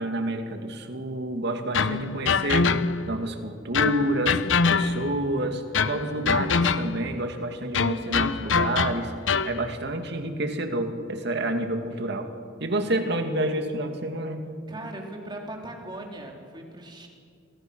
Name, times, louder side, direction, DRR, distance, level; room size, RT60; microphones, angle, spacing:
voice 1, 0.0-2.8 3.1-4.4 4.7-9.1 9.4-12.3 12.6-14.4, right 1 dB, 60° right, 5 dB, 2.3 m, -29 dB
sound 1, 1.7-3.2 3.7-5.2 5.7-7.1 7.7-9.6, left 5 dB, 75° left, 0.8 m, -24 dB
voice 2, 6.0-6.3 14.7-17.1, right 1 dB, 25° right, 1 dB, 3.7 m, -39 dB
28.0 x 23.5 x 6.4 m, 2.3 s
head